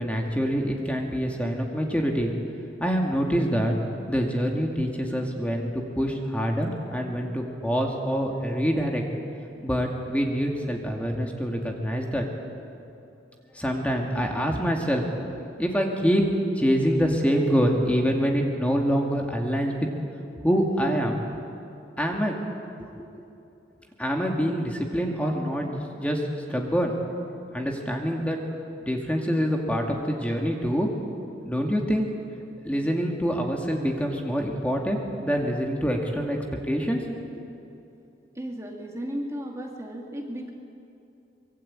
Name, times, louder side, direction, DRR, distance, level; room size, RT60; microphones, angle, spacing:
voice 1, 0.0-2.3 2.8-3.7 4.1-9.0 9.6-12.2 13.5-15.0 15.6-19.9 20.4-21.2 22.0-22.3 22.8-23.1 24.0-26.9 27.5-28.4 28.9-30.9 31.4-32.1 32.6-36.4 36.6-37.1, equal, 5° left, 1 dB, 2.3 m, -25 dB
voice 2, 38.4-40.5, equal, 15° right, 1 dB, 2.3 m, -34 dB
24.5 x 23.0 x 8.9 m, 2.7 s
head